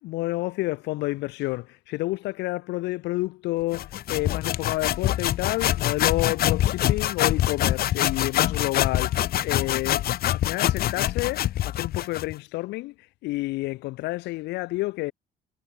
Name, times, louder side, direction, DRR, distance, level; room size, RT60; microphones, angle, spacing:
voice 1, 0.0-12.9 13.2-15.1, left 20 dB, 90° left, 2.2 m, -29 dB
sound 1, 3.7-12.3, left 13 dB, 65° left, 1.5 m, -25 dB
cardioid pair, 110°, 17 cm